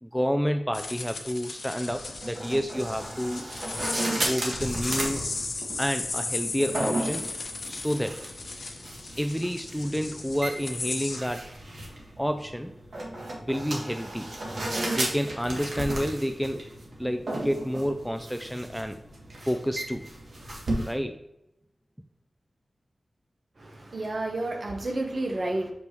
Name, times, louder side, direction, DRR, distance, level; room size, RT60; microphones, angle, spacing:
voice 1, 0.0-3.5 4.2-5.2 5.8-7.2 7.7-8.2 9.2-11.4 12.2-12.7 13.5-14.3 14.8-16.6 17.0-19.0 19.5-20.0 20.8-21.2, equal, ahead, 6 dB, 0.4 m, -29 dB
sound 1, 0.7-11.2, left 3 dB, 70° left, 0.9 m, -36 dB
sound 2, 2.2-20.9, right 1 dB, 75° right, 1.7 m, -35 dB
voice 2, 23.6-25.7, right 2 dB, 50° right, 3 dB, 1.1 m, -30 dB
6.8 x 5.3 x 3.1 m, 0.85 s
wide cardioid pair, 110°, 0 cm